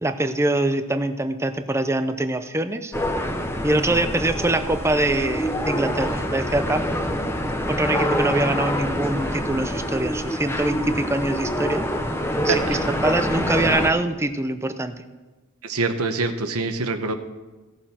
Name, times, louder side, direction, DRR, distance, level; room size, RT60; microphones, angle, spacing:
voice 1, 0.0-2.9 3.6-6.8 7.7-11.8 12.4-15.0, right 2 dB, 10° right, 9 dB, 0.6 m, -24 dB
sound 1, 2.9-13.9, equal, 10° left, 0.9 m, -26 dB
voice 2, 12.5-12.8 15.6-17.1, right 3 dB, 90° right, 8 dB, 1.0 m, -25 dB
17.0 x 7.0 x 4.3 m, 1.2 s
head